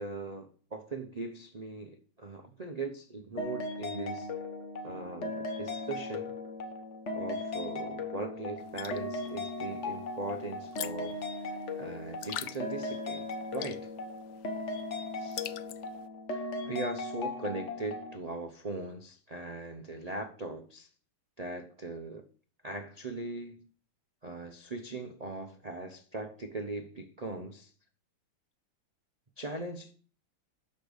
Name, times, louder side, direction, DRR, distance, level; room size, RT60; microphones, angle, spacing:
voice 1, 0.0-4.3 4.8-6.3 7.1-11.2 11.8-13.3 13.5-13.9 15.2-15.4 16.3-20.9 21.4-22.3 22.6-23.7 24.2-27.7 29.4-29.9, right 2 dB, 65° right, 0.4 m, -40 dB
sound 1, 3.4-18.1, left 2 dB, 40° left, 1.4 m, -37 dB
sound 2, 8.6-16.1, left 12 dB, 70° left, 1.1 m, -45 dB
12.5 x 5.3 x 6.4 m
omnidirectional pair, 2.2 m